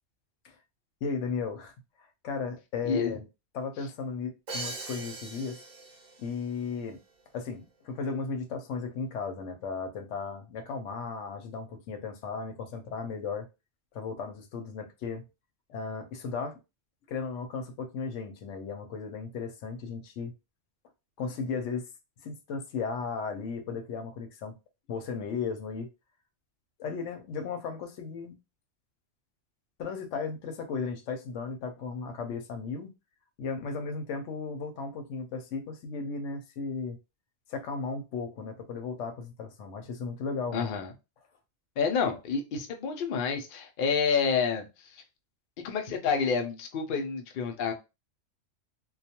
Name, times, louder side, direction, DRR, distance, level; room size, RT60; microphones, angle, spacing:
voice 1, 1.0-1.7 2.0-3.2 3.5-5.6 6.2-7.0 7.3-13.5 13.9-15.2 15.7-16.6 17.1-20.3 21.2-21.9 22.2-24.6 24.9-25.9 26.8-28.3 29.8-32.9 33.4-37.0 37.5-40.7, left 5 dB, 80° left, 0.9 m, -35 dB
voice 2, 2.8-3.2 40.5-40.9 41.8-45.0 45.6-47.7, left 5 dB, 60° left, 0.6 m, -29 dB
Crash cymbal, 4.5-6.3, right 3 dB, 50° right, 0.7 m, -40 dB
2.3 x 2.2 x 2.8 m
omnidirectional pair, 1.2 m